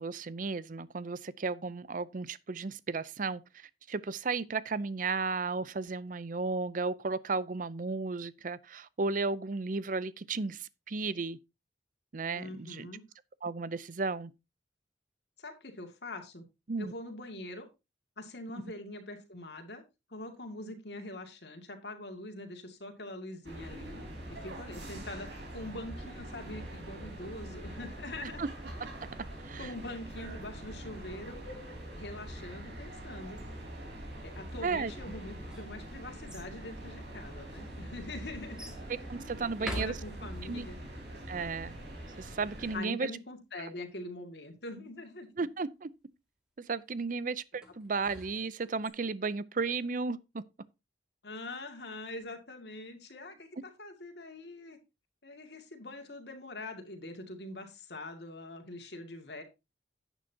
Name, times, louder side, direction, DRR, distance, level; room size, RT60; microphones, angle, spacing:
voice 1, 0.0-11.4 12.1-12.9 13.4-14.3 16.7-16.9 28.2-28.5 29.4-29.7 34.6-34.9 39.1-40.0 40.4-40.7 41.3-41.8 42.2-43.1 43.6-43.7 45.4-45.9 46.6-50.4, right 4 dB, 45° right, 0.6 m, -34 dB
voice 2, 12.3-13.0 15.4-16.4 16.8-17.7 18.2-19.8 20.1-24.0 24.3-28.4 29.6-31.4 32.0-33.4 34.2-38.7 39.6-40.8 42.7-45.3 47.1-47.3 51.2-54.8 55.2-59.4, left 2 dB, 65° left, 2.2 m, -43 dB
sound 1, 23.4-42.8, right 1 dB, 75° right, 4.2 m, -44 dB
sound 2, 35.2-36.5 37.3-37.4 38.6-38.9 39.5-40.6 47.6-48.9, equal, 5° right, 2.1 m, -43 dB
11.0 x 9.0 x 2.8 m
head